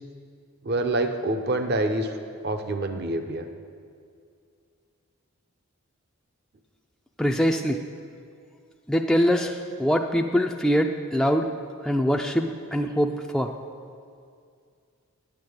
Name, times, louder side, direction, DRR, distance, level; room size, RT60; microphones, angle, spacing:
voice 1, 0.6-2.2 2.4-3.5, right 2 dB, 50° right, 7 dB, 0.7 m, -26 dB
voice 2, 7.2-7.8 8.9-11.5 11.8-13.5, equal, ahead, 1 dB, 0.4 m, -23 dB
9.4 x 8.8 x 7.9 m, 2.3 s
head